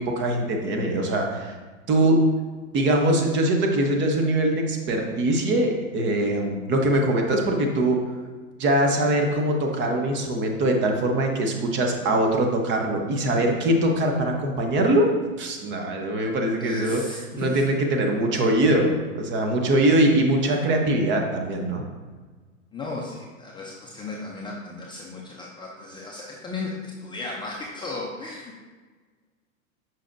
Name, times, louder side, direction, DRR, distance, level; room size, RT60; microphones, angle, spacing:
voice 1, 0.0-1.5 1.9-2.2 2.7-8.0 8.6-15.1 15.4-17.0 17.4-21.8, right 1 dB, 25° right, 2 dB, 0.9 m, -22 dB
voice 2, 16.6-17.6 22.7-28.6, left 3 dB, 10° left, -4 dB, 0.6 m, -35 dB
7.0 x 5.7 x 2.6 m, 1.4 s
hypercardioid pair, 115°, 42 cm